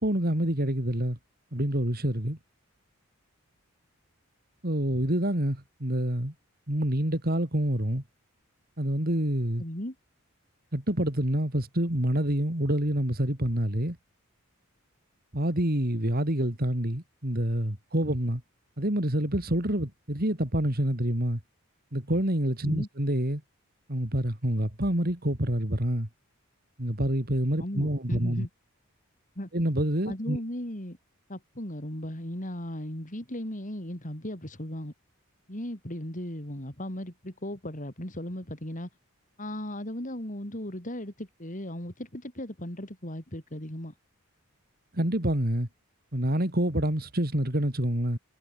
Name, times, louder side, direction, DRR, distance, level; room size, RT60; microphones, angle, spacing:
voice 1, 0.0-1.2 1.5-2.4 4.6-6.3 6.7-8.0 8.8-9.6 10.7-14.0 15.3-18.4 18.8-21.4 21.9-23.4 23.9-26.1 26.8-28.5 29.5-30.4 44.9-45.7 46.1-48.2, right 1 dB, 45° right, 3.8 m, -27 dB
voice 2, 9.6-9.9 22.6-22.9 27.6-28.5 29.4-29.5 30.1-31.0 31.3-34.9 35.5-38.9 39.4-43.9, left 1 dB, 35° left, 4.6 m, -36 dB
head